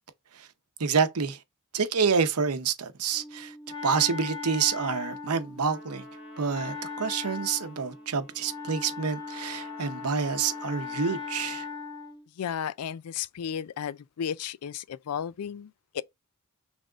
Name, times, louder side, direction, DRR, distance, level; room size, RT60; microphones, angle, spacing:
voice 1, 0.8-1.4 1.7-3.5 3.8-6.0 6.4-11.7, right 6 dB, 80° right, 0.8 m, -28 dB
Wind instrument woodwind instrument, 3.1-12.2, left 4 dB, 20° left, 1.2 m, -39 dB
Trumpet, 5.6-11.8, left 4 dB, 55° left, 1.4 m, -52 dB
voice 2, 12.4-16.0, left 8 dB, 85° left, 0.4 m, -34 dB
6.3 x 3.5 x 2.4 m
head